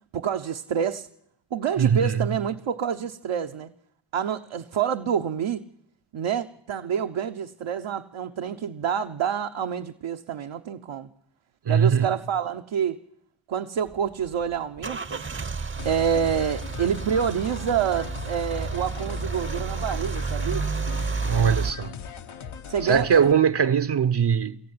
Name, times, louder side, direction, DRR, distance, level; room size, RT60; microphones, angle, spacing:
voice 1, 0.1-1.1 1.5-3.7 4.1-5.6 6.1-11.1 11.6-13.0 13.5-15.2 15.8-20.7 22.7-23.1, right 8 dB, 75° right, 1.1 m, -27 dB
voice 2, 1.8-2.3 11.7-12.1 21.2-22.0 22.8-24.6, right 7 dB, 60° right, 0.9 m, -21 dB
Car / Engine starting / Idling, 13.9-21.7, right 4 dB, 25° right, 0.7 m, -31 dB
sound 1, 15.8-23.3, left 7 dB, 90° left, 1.5 m, -39 dB
23.0 x 14.5 x 9.7 m
cardioid pair, 65°, 47 cm